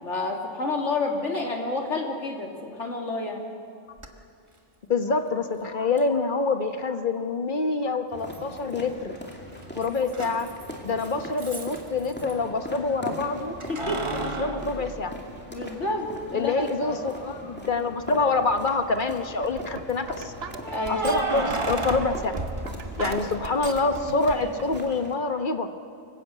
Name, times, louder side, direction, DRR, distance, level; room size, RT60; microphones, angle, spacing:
voice 1, 0.0-3.5 13.7-14.2 14.8-14.9 15.5-17.0 20.7-21.1 24.0-24.6, left 2 dB, 65° left, 1 dB, 2.7 m, -30 dB
Keys jangling, 4.0-4.1 6.0-6.1 8.3-8.9 9.2-12.3 13.6-15.7 16.2-16.3 18.1-18.6 20.6-23.6, right 3 dB, 25° right, 1.4 m, -33 dB
voice 2, 4.9-9.2 9.8-10.5 10.8-13.5 14.2-15.1 16.3-20.3 20.9-22.3 23.0-25.7, left 3 dB, 40° left, 7 dB, 1.2 m, -26 dB
sound 1, 8.1-25.1, equal, 10° left, 2.5 m, -41 dB
sound 2, 19.2-24.8, right 5 dB, 55° right, 1.2 m, -39 dB
25.0 x 15.5 x 8.3 m, 2.5 s
omnidirectional pair, 1.3 m